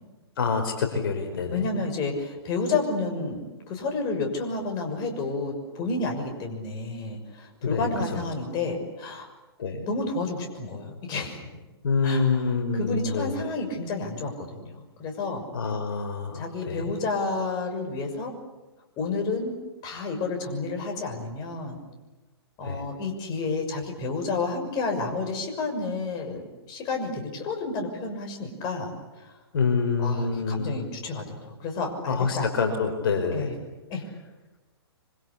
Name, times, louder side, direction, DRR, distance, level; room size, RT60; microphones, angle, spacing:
voice 1, 0.4-1.7 7.6-8.2 9.6-9.8 11.8-13.5 15.5-16.9 22.6-22.8 29.5-30.8 32.1-33.6, left 4 dB, 60° left, 5 dB, 4.9 m, -27 dB
voice 2, 1.5-9.3 9.8-11.5 12.0-12.4 12.7-15.4 16.4-18.3 19.0-19.5 19.8-21.8 22.6-28.9 30.0-32.4 33.3-33.5 33.9-34.0, left 3 dB, 30° left, 3 dB, 6.4 m, -30 dB
26.5 x 26.0 x 8.5 m, 1.1 s
figure-of-eight pair, 125°, 14 cm